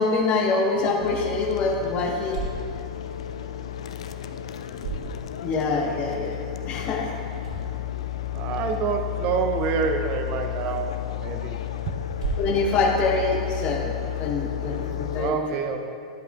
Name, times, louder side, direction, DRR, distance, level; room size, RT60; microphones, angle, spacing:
voice 1, 0.0-2.4 5.4-7.1 12.4-13.9 14.2-15.4, left 3 dB, 35° left, 1 dB, 1.2 m, -25 dB
sound 1, 0.5-14.1, right 5 dB, 70° right, 1.8 m, -41 dB
sound 2, 1.0-15.3, left 11 dB, 65° left, 0.4 m, -32 dB
voice 2, 8.3-11.6 11.9-12.1 15.2-15.8, right 6 dB, 40° right, 6 dB, 0.6 m, -27 dB
12.0 x 8.1 x 2.3 m, 2.4 s
figure-of-eight pair, 95°, 3 cm